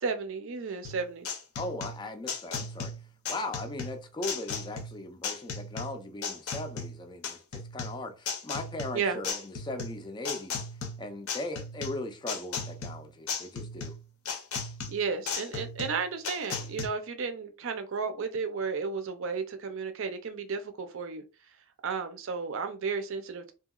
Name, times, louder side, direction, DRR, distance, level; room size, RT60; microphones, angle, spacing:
voice 1, 0.0-1.4 8.9-9.2 14.9-21.2 21.8-23.5, right 5 dB, 60° right, 0.5 m, -33 dB
sound 1, 0.8-16.9, left 4 dB, 80° left, 0.7 m, -36 dB
voice 2, 1.6-2.9 3.3-10.6 11.0-13.9, left 2 dB, 20° left, 0.4 m, -38 dB
2.8 x 2.7 x 2.3 m
head